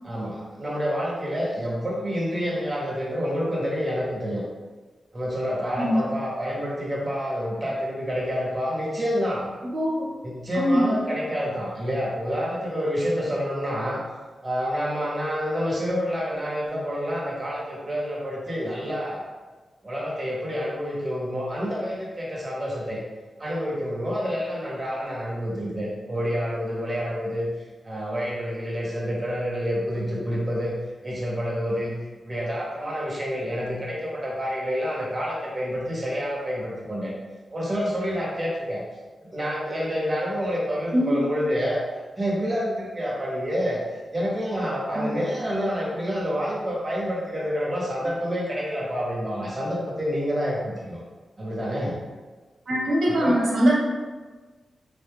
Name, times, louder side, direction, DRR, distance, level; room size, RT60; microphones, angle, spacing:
voice 1, 0.0-4.4 5.1-9.5 10.2-14.0 14.4-19.2 19.8-23.0 23.4-27.5 27.8-30.7 31.0-31.9 32.2-37.1 37.5-38.8 39.3-41.8 42.2-43.8 44.1-51.0 51.4-51.9 53.2-53.4, equal, 20° right, -5 dB, 0.9 m, -28 dB
voice 2, 9.6-10.0 10.5-11.0 40.9-41.3 44.9-45.1 52.7-53.7, equal, 80° right, -4 dB, 0.9 m, -22 dB
3.6 x 2.2 x 3.4 m, 1.3 s
wide cardioid pair, 160°, 0 cm